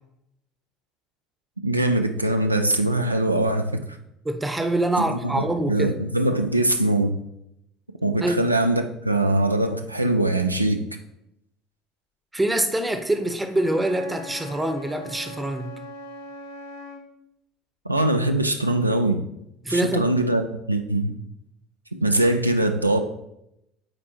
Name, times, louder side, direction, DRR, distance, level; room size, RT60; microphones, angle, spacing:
voice 1, 1.6-4.0 5.1-7.2 8.0-10.8 17.9-19.2 19.7-20.4 20.7-21.2 22.0-23.0, right 1 dB, 90° right, 0.3 m, -22 dB
voice 2, 4.2-6.0 8.2-8.4 12.3-15.7 19.6-20.1, right 1 dB, 10° right, 0.7 m, -25 dB
Wind instrument woodwind instrument, 13.5-17.1, equal, 85° left, 0.9 m, -40 dB
8.8 x 4.2 x 2.8 m
figure-of-eight pair, 65°, 0 cm